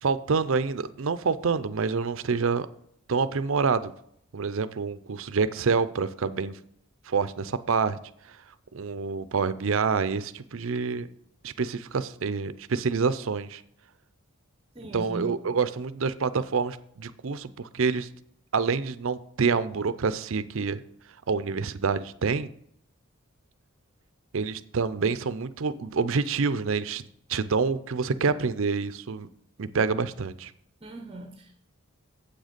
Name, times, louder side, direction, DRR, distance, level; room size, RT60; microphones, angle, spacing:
voice 1, 0.0-2.7 3.1-3.9 4.3-6.5 7.1-8.0 8.3-8.4 8.7-11.1 11.4-13.6 14.9-18.1 18.5-20.8 21.3-22.5 24.3-29.3 29.6-30.5, right 5 dB, 60° right, 14 dB, 0.5 m, -27 dB
voice 2, 14.7-15.3 30.8-31.5, right 2 dB, 25° right, 5 dB, 0.7 m, -39 dB
7.9 x 6.4 x 5.1 m, 0.71 s
head